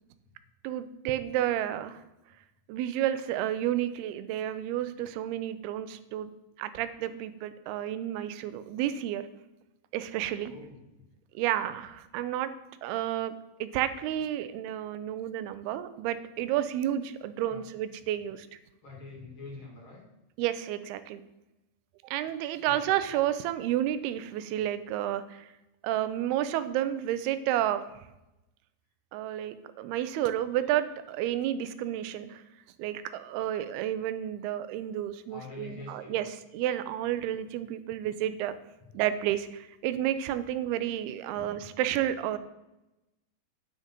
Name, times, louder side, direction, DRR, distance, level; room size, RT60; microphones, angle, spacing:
voice 1, 0.6-2.0 2.7-6.3 6.6-9.2 9.9-10.5 11.4-12.5 12.8-13.3 13.6-18.5 20.4-21.2 22.0-25.5 25.8-27.8 29.1-32.4 32.8-36.3 36.5-38.5 38.9-42.4, right 12 dB, 90° right, 12 dB, 2.6 m, -31 dB
voice 2, 10.5-11.0 17.5-17.7 18.8-20.0 22.6-23.1 35.3-36.3 41.3-41.7, left 3 dB, 40° left, -2 dB, 2.5 m, -46 dB
10.0 x 6.5 x 5.1 m, 0.95 s
omnidirectional pair, 4.5 m